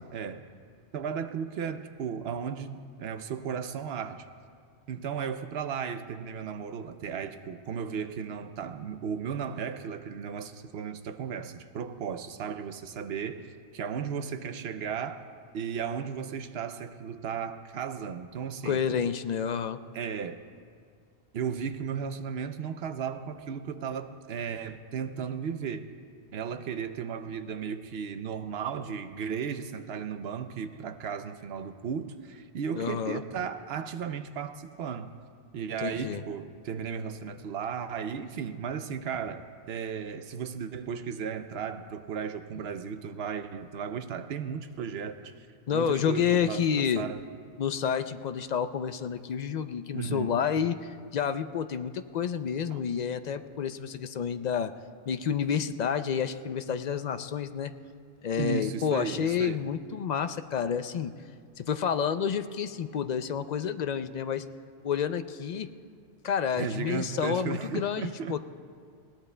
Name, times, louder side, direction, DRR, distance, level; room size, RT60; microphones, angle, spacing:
voice 1, 0.1-0.5 0.9-4.3 4.9-15.3 15.5-18.8 19.9-20.4 21.3-25.9 26.3-35.1 35.5-45.3 45.7-47.2 49.9-50.4 52.7-52.8 58.4-59.7 66.6-68.4, right 7 dB, 75° right, 10 dB, 0.9 m, -35 dB
voice 2, 18.6-19.8 32.7-33.2 35.8-36.2 45.7-47.0 47.6-54.7 55.1-57.7 58.2-61.1 61.6-64.4 64.8-65.7 66.2-68.4, left 7 dB, 55° left, 10 dB, 0.5 m, -29 dB
20.5 x 18.0 x 2.2 m, 2.1 s
omnidirectional pair, 1.1 m